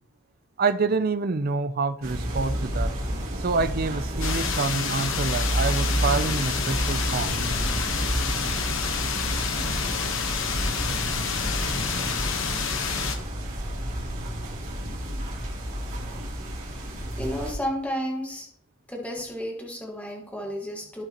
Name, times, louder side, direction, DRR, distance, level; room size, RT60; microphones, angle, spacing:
voice 1, 0.6-2.9 3.4-7.4, right 4 dB, 40° right, 0.4 m, -27 dB
sound 1, 2.0-17.5, equal, 65° right, 2.9 m, -30 dB
sound 2, 4.2-13.2, left 6 dB, 60° left, 1.1 m, -29 dB
voice 2, 17.1-18.5 18.9-21.0, equal, 5° left, 1.5 m, -32 dB
15.5 x 5.6 x 2.9 m
head